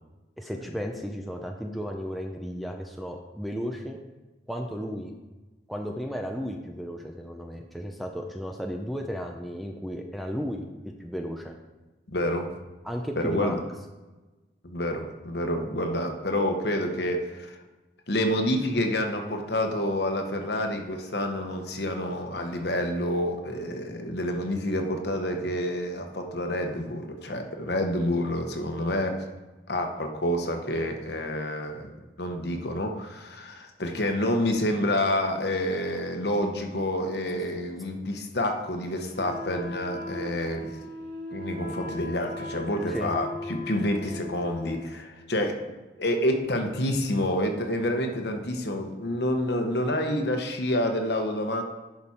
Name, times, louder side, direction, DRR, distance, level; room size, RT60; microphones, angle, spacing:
voice 1, 0.4-4.0 4.5-5.1 5.7-11.5 12.8-13.6 42.9-43.2, equal, ahead, 2 dB, 0.5 m, -34 dB
voice 2, 12.1-12.5 13.2-13.6 14.6-17.6 18.1-29.2 29.7-31.9 32.2-40.7 41.3-45.6 46.0-51.6, left 1 dB, 60° left, 4 dB, 1.1 m, -28 dB
Wind instrument woodwind instrument, 39.1-45.1, left 1 dB, 65° right, 2.7 m, -38 dB
10.5 x 5.3 x 4.3 m, 1.2 s
head